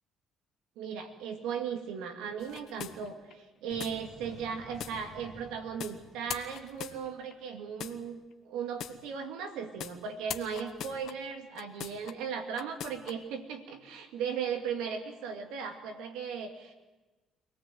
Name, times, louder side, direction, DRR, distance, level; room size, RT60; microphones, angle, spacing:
voice 1, 0.8-16.7, right 7 dB, 85° right, 5 dB, 2.4 m, -37 dB
sound 1, 2.4-3.3 3.8-4.0 4.8-5.0 5.8-5.9 6.3-7.3 7.8-8.0 8.8-9.0 9.8-10.0 10.3-12.1 12.5-13.1, left 10 dB, 70° left, 1.2 m, -40 dB
sound 2, 3.7-7.1, right 1 dB, 30° right, 5.3 m, -52 dB
24.5 x 17.5 x 7.9 m, 1.2 s
supercardioid pair, 70°, 0 cm